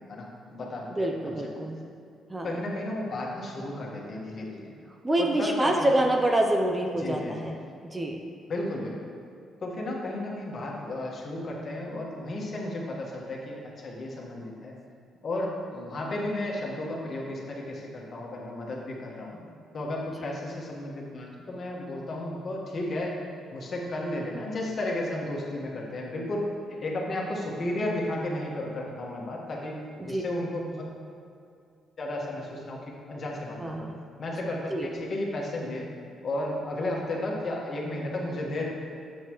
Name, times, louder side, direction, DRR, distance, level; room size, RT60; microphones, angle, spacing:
voice 1, 0.0-1.6 2.4-4.7 5.2-5.9 7.0-7.5 8.5-9.0 9.6-14.7 15.2-19.4 19.7-23.2 23.5-26.5 26.8-30.8 32.0-33.9 34.2-35.9 36.2-38.6, left 1 dB, 50° left, -2 dB, 1.5 m, -33 dB
voice 2, 0.9-1.8 2.3-2.6 5.0-7.6 7.8-8.2 30.0-30.2 33.6-33.9 34.7-34.9, right 1 dB, 20° right, 2 dB, 0.6 m, -26 dB
7.9 x 7.6 x 3.1 m, 2.4 s
cardioid pair, 90°, 0 cm